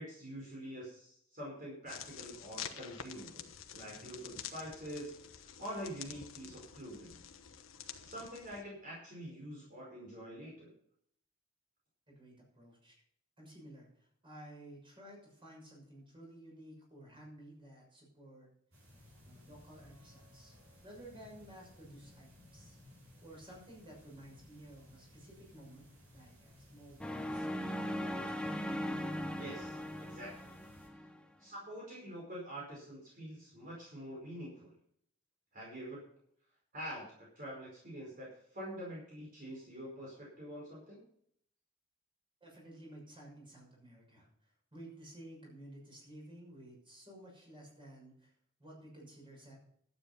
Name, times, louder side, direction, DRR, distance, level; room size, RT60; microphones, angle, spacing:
voice 1, 0.0-7.2 8.0-10.7 29.4-30.3 31.4-34.7 35.5-36.0 36.7-38.3 38.5-41.0, equal, 45° right, -4 dB, 4.9 m, -46 dB
sound 1, 1.9-8.6, left 8 dB, 75° left, 1.2 m, -48 dB
voice 2, 12.1-13.0 13.4-18.5 19.2-20.5 20.8-28.1 42.4-48.3 48.6-49.6, right 1 dB, 25° right, -2 dB, 6.3 m, -54 dB
sound 2, 18.7-30.9, left 1 dB, 70° right, 6.2 m, -60 dB
sound 3, 27.0-31.2, equal, 5° left, 0.8 m, -39 dB
12.0 x 9.1 x 5.6 m, 0.66 s
head